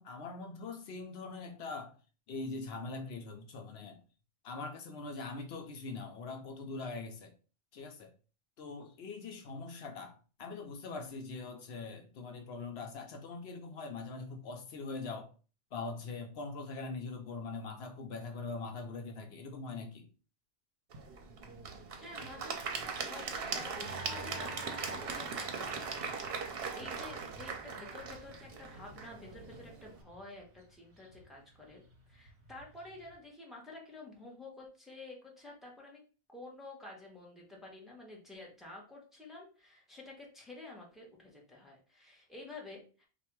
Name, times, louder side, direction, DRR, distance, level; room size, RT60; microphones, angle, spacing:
voice 1, 0.0-1.9 2.3-4.0 4.4-7.3 7.7-8.1 8.6-15.3 15.7-20.1, left 3 dB, 75° left, 0.9 m, -42 dB
Applause / Crowd, 20.9-30.0, right 5 dB, 65° right, 0.9 m, -40 dB
voice 2, 22.0-26.1 26.5-31.8 32.1-36.0 36.3-43.1, left 2 dB, ahead, 1.1 m, -50 dB
Motorcycle / Traffic noise roadway noise, 23.8-33.2, right 2 dB, 45° right, 1.1 m, -55 dB
3.2 x 2.5 x 4.5 m
omnidirectional pair, 1.1 m